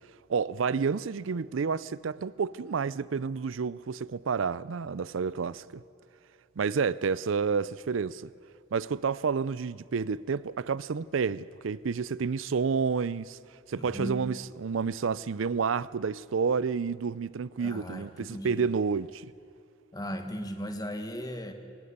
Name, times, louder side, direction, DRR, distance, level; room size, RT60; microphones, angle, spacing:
voice 1, 0.3-5.8 6.6-8.3 8.7-13.4 13.7-19.3, right 5 dB, 75° right, 0.5 m, -30 dB
voice 2, 13.8-14.3 17.6-18.7 19.9-21.5, equal, 20° left, 1.6 m, -37 dB
20.5 x 20.0 x 8.1 m
head